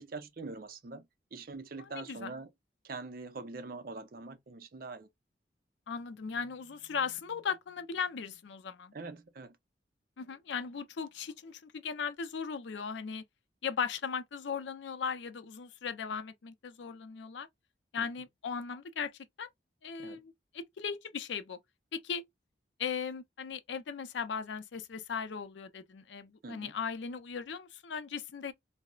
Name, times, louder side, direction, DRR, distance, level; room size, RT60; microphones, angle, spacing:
voice 1, 0.0-2.5 2.8-5.1 8.9-9.6 18.0-18.1 20.0-20.2 26.4-26.7, right 3 dB, 55° right, 0.5 m, -44 dB
voice 2, 1.8-2.3 5.9-8.9 10.2-13.2 13.6-17.5 17.9-19.1 19.4-19.5 19.8-21.6 21.9-22.2 22.8-28.5, left 6 dB, 80° left, 0.5 m, -37 dB
3.9 x 2.0 x 2.2 m
head